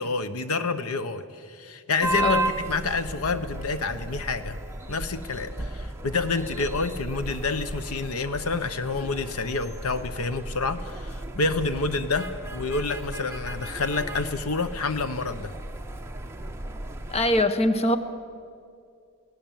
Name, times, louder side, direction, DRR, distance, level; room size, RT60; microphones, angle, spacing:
voice 1, 0.0-4.6 4.9-15.5, left 3 dB, 75° left, 11 dB, 1.1 m, -28 dB
sound 1, 2.0-17.5, right 2 dB, 10° right, 1.2 m, -35 dB
voice 2, 17.1-18.0, left 1 dB, 30° left, 10 dB, 0.9 m, -22 dB
24.5 x 17.5 x 7.4 m, 2.3 s
head